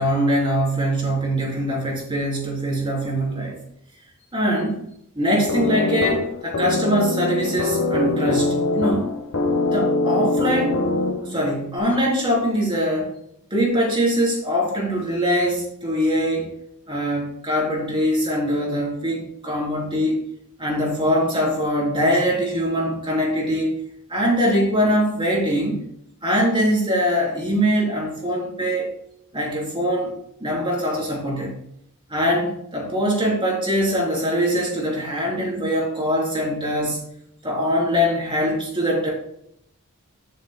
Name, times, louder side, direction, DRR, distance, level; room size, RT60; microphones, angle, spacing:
voice 1, 0.0-3.6 4.3-4.8 5.1-9.1 9.7-10.8 11.2-13.1 13.5-16.5 16.9-20.2 20.6-23.7 24.1-25.8 26.2-28.9 29.3-30.1 30.4-31.6 32.1-37.0 37.4-39.1, equal, 25° right, -3 dB, 3.4 m, -22 dB
sound 1, 5.5-11.5, left 3 dB, 65° left, 1.2 m, -23 dB
13.0 x 7.5 x 2.2 m, 0.74 s
head